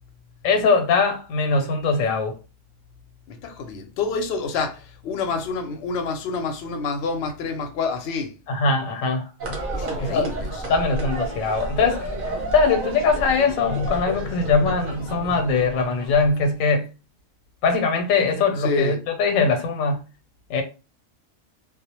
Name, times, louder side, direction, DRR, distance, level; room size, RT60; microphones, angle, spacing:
voice 1, 0.4-2.3 8.5-9.3 10.0-10.3 10.7-12.1 12.5-16.9 17.6-20.0 20.5-20.6, left 4 dB, 90° left, 1.0 m, -21 dB
voice 2, 3.3-8.4 9.7-10.7 18.6-19.0, left 4 dB, 65° left, 0.7 m, -28 dB
sound 1, 9.4-16.5, right 1 dB, 45° right, 0.7 m, -30 dB
2.3 x 2.0 x 2.8 m
omnidirectional pair, 1.4 m